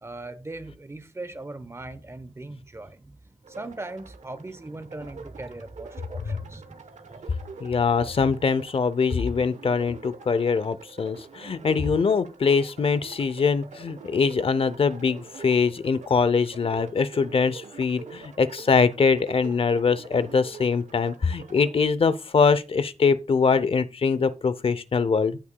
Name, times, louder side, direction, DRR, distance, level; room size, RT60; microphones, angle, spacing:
voice 1, 0.0-7.4, right 2 dB, 20° right, 0.9 m, -40 dB
sound 1, 3.4-21.7, right 5 dB, 90° right, 1.0 m, -45 dB
voice 2, 7.6-25.4, left 5 dB, 50° left, 0.6 m, -23 dB
16.0 x 5.8 x 2.2 m
wide cardioid pair, 120°, 12 cm